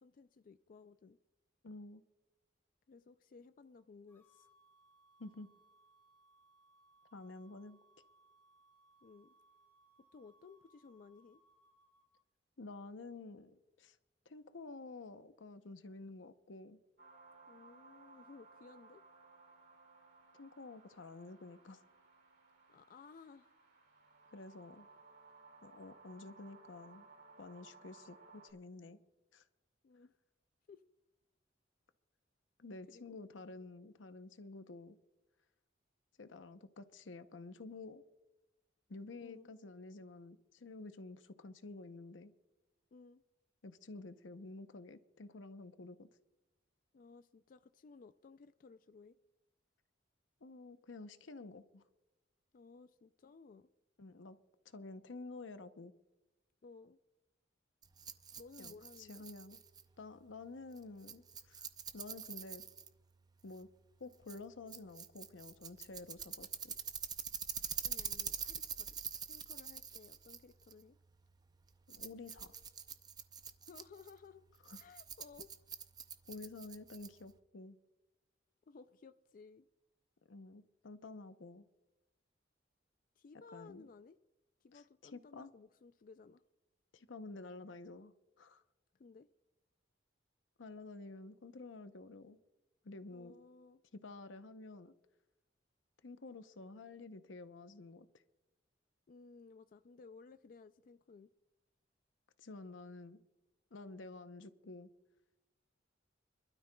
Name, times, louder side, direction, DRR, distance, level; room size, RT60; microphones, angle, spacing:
voice 1, 0.0-1.2 2.9-4.5 9.0-9.3 10.0-11.4 17.5-19.0 22.7-23.6 29.8-30.1 30.7-30.8 32.9-33.2 39.2-39.5 42.9-43.2 46.9-49.2 52.5-53.7 56.6-57.0 58.4-59.2 67.8-69.0 69.3-71.0 73.7-74.4 74.7-75.5 78.7-79.7 83.2-84.2 84.6-86.4 88.9-89.3 93.1-93.8 99.1-101.3, left 4 dB, 45° left, 11 dB, 0.3 m, -58 dB
voice 2, 1.6-2.0 5.2-5.5 7.1-7.8 12.6-13.5 13.8-14.0 14.3-16.8 20.3-21.8 24.3-24.9 25.6-27.1 27.4-29.0 29.3-29.4 32.6-35.0 36.2-38.0 38.9-42.3 43.6-46.1 50.4-51.8 54.0-54.4 54.6-55.9 58.6-59.6 60.0-61.6 61.9-62.6 63.4-63.7 64.0-66.7 71.9-72.6 74.7-74.8 76.3-77.8 80.3-81.6 83.5-83.9 84.7-84.8 85.1-85.5 86.9-88.1 88.4-88.6 90.6-92.4 92.8-93.4 93.9-94.9 96.0-98.1 102.4-103.2 103.7-104.9, left 3 dB, 85° left, 10 dB, 0.8 m, -50 dB
sound 1, 4.1-12.2, right 2 dB, 15° left, 3.2 m, -69 dB
sound 2, 17.0-28.5, right 3 dB, 60° right, 2.3 m, -61 dB
Rattle, 57.8-77.4, right 7 dB, 20° right, 0.5 m, -46 dB
26.5 x 12.5 x 2.3 m, 0.98 s
head